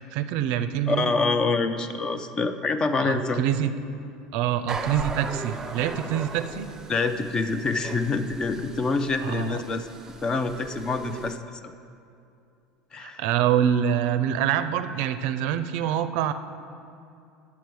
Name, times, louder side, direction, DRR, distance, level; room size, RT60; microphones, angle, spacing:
voice 1, 0.1-1.1 3.0-3.7 4.3-6.7 9.2-9.6 13.0-16.3, right 10 dB, 70° right, 11 dB, 0.4 m, -25 dB
voice 2, 0.9-3.4 6.9-9.9 10.2-11.7 12.9-13.3, left 3 dB, 30° left, 10 dB, 0.5 m, -26 dB
sound 1, 4.7-11.4, right 4 dB, 20° right, 0.5 m, -38 dB
8.5 x 7.0 x 4.7 m, 2.6 s
supercardioid pair, 105°, 3 cm